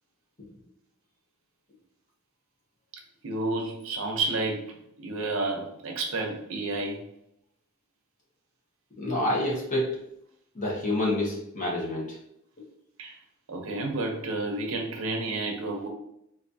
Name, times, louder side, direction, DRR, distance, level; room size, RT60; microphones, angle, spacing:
voice 1, 3.2-4.7 5.0-7.0 13.0-13.2 13.5-15.9, right 2 dB, 70° right, 2 dB, 0.7 m, -30 dB
voice 2, 9.0-9.9 10.5-12.2, left 1 dB, 40° left, -4 dB, 1.3 m, -28 dB
4.2 x 2.7 x 2.6 m, 0.77 s
head